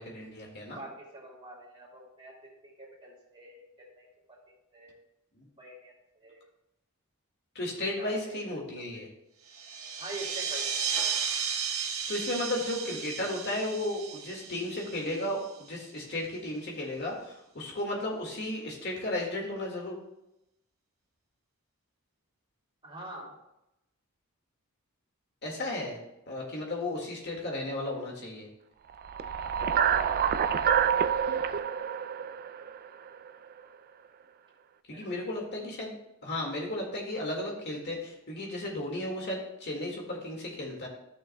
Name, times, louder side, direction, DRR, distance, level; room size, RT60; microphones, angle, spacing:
voice 1, 0.0-0.8 5.4-5.5 7.6-9.1 12.1-20.0 25.4-26.0 26.3-28.5 34.9-40.9, left 1 dB, 50° left, -1 dB, 1.9 m, -34 dB
voice 2, 0.7-3.6 4.0-4.4 4.7-4.9 5.6-5.9 6.2-6.4 7.8-8.4 8.8-9.0 10.0-10.8 22.8-23.3 34.9-35.1, right 2 dB, 25° right, -4 dB, 2.9 m, -45 dB
sound 1, 9.5-15.6, right 6 dB, 75° right, 1.5 m, -34 dB
sound 2, 29.0-33.3, right 8 dB, 45° right, 0.3 m, -27 dB
14.5 x 6.3 x 2.2 m, 0.88 s
head